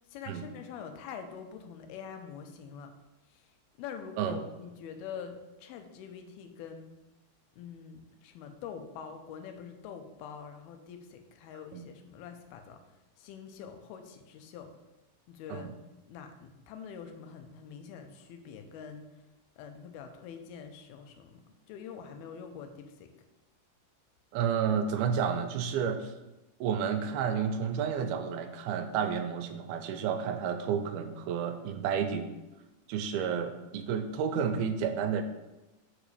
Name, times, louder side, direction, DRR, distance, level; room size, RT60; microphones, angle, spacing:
voice 1, 0.1-3.0 3.3-3.5 3.8-6.9 7.6-12.9 13.2-14.7 15.3-15.7 16.1-19.1 19.6-23.1, left 7 dB, 85° left, 6 dB, 2.7 m, -45 dB
voice 2, 24.3-26.1 26.6-32.3 32.9-35.2, right 7 dB, 85° right, 7 dB, 2.5 m, -31 dB
5.9 x 5.1 x 6.6 m, 1.0 s
omnidirectional pair, 4.4 m